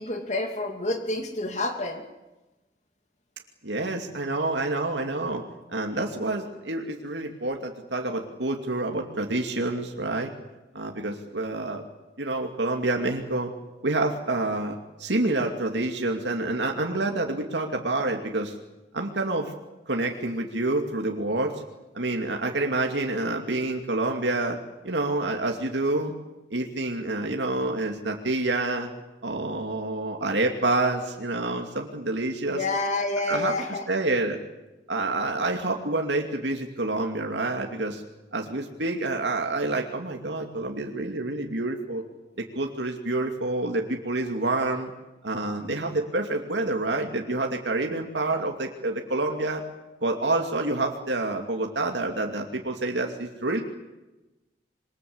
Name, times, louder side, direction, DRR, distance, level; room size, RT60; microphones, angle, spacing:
voice 1, 0.0-2.0 32.5-33.9, left 2 dB, 40° left, 4 dB, 2.7 m, -28 dB
voice 2, 3.6-5.4 5.7-10.3 10.7-11.8 12.2-13.5 13.8-18.6 18.9-19.5 19.9-21.6 21.9-24.6 24.8-26.1 26.5-28.9 29.2-32.6 33.3-34.4 34.9-38.0 38.3-42.0 42.4-44.9 45.2-49.6 50.0-53.6, right 2 dB, 80° right, 2 dB, 2.7 m, -28 dB
27.0 x 23.5 x 8.1 m, 1.0 s
head